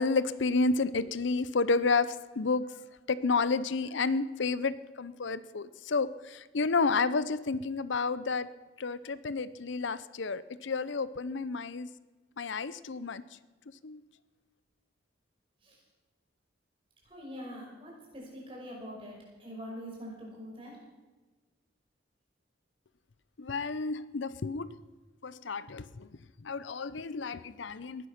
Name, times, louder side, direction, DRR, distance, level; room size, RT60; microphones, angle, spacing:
voice 1, 0.0-2.7 3.1-8.5 8.8-11.9 12.4-13.2 13.8-14.0 23.4-24.7 25.2-26.1 26.4-28.1, left 4 dB, 70° left, 16 dB, 0.6 m, -30 dB
voice 2, 17.1-20.8, equal, 30° right, -2 dB, 5.4 m, -44 dB
19.5 x 11.5 x 5.8 m, 1.3 s
head